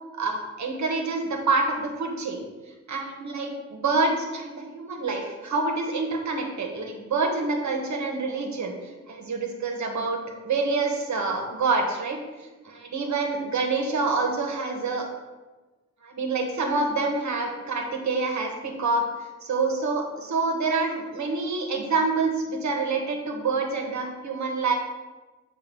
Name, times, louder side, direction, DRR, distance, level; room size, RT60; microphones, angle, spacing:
voice 1, 0.1-2.4 2.9-8.7 9.1-10.2 10.4-12.2 12.6-15.1 16.0-19.0 19.4-24.7, right 3 dB, 70° right, 2 dB, 1.1 m, -27 dB
7.4 x 2.7 x 5.3 m, 1.2 s
wide cardioid pair, 130°, 30 cm